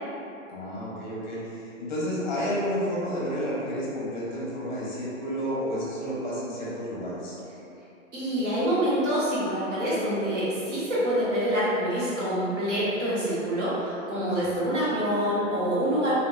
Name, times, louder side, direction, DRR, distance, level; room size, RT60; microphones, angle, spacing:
voice 1, 0.5-7.4 14.4-14.5, equal, 35° left, -7 dB, 0.7 m, -31 dB
voice 2, 8.1-16.1, equal, 65° right, -9 dB, 1.2 m, -26 dB
2.7 x 2.7 x 2.2 m, 2.8 s
hypercardioid pair, 180°, 39 cm